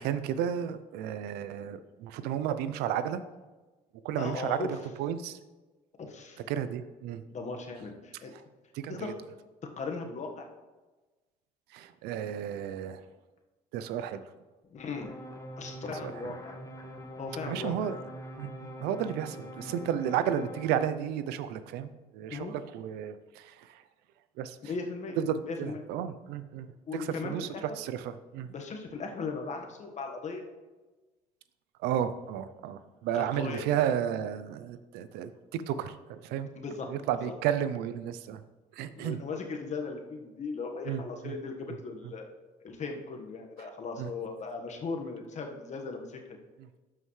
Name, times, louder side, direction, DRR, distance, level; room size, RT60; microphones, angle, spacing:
voice 1, 0.0-3.2 4.0-5.4 6.5-7.2 8.3-8.4 8.7-9.1 11.7-13.0 13.7-14.2 16.0-16.3 17.5-18.0 18.4-23.8 24.4-24.6 25.2-28.5 31.8-36.5 36.9-38.4 38.7-39.2 40.8-41.3 44.0-44.1 46.6-46.7, right 9 dB, 80° right, 13 dB, 0.5 m, -33 dB
voice 2, 4.2-4.7 6.0-6.4 7.3-8.3 8.9-9.1 9.8-10.5 14.7-15.1 15.6-16.5 17.2-17.9 22.3-22.5 24.6-25.2 25.4-25.8 26.9-27.6 28.5-30.4 33.1-33.6 36.5-36.9 37.2-37.3 39.0-42.3 42.6-46.2, left 4 dB, 45° left, 3 dB, 1.4 m, -37 dB
sound 1, 15.0-20.8, equal, 20° left, 1.4 m, -44 dB
12.0 x 5.7 x 3.2 m, 1.2 s
supercardioid pair, 75°, 16 cm